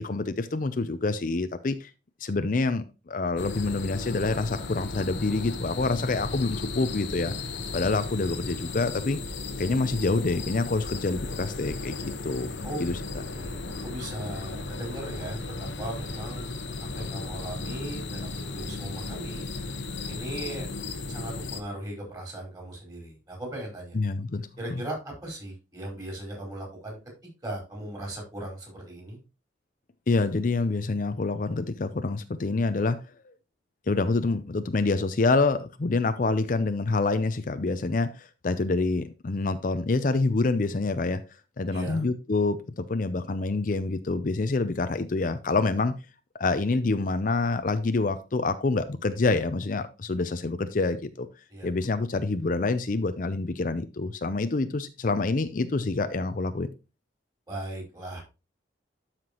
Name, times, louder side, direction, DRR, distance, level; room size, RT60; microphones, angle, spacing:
voice 1, 0.0-1.9 2.2-7.3 7.7-9.2 9.6-12.5 12.8-13.0 23.9-24.8 30.1-33.0 33.2-33.3 33.9-41.2 41.6-45.9 46.3-51.3 51.6-56.7, left 3 dB, 45° left, 11 dB, 0.5 m, -27 dB
sound 1, 3.4-21.6, left 3 dB, 90° left, 1.2 m, -35 dB
voice 2, 13.3-19.4 20.1-20.7 21.1-24.0 24.6-27.0 27.4-29.2 41.7-42.1 51.5-51.7 57.5-58.2, right 1 dB, 20° right, -1 dB, 4.6 m, -38 dB
12.5 x 5.8 x 3.0 m, 0.29 s
head